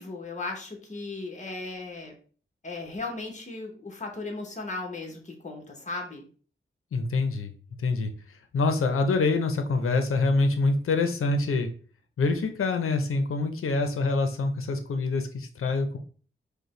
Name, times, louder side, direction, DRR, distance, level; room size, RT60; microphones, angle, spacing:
voice 1, 0.0-2.1 2.6-6.2, left 3 dB, 35° left, 1 dB, 1.1 m, -36 dB
voice 2, 6.9-7.5 7.8-11.7 12.2-16.0, left 3 dB, 85° left, 6 dB, 0.6 m, -26 dB
5.1 x 2.2 x 3.1 m, 0.41 s
wide cardioid pair, 95°, 21 cm